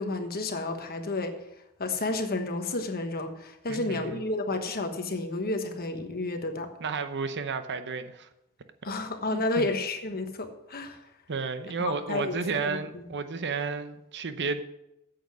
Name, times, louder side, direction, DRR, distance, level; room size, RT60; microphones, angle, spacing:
voice 1, 0.0-1.4 1.8-6.7 8.8-11.0 12.1-13.0, left 2 dB, 45° left, 6 dB, 1.2 m, -31 dB
voice 2, 3.7-4.2 6.8-8.3 9.3-9.7 11.3-14.6, right 4 dB, 50° right, 10 dB, 0.8 m, -32 dB
9.2 x 7.8 x 6.2 m, 0.85 s
head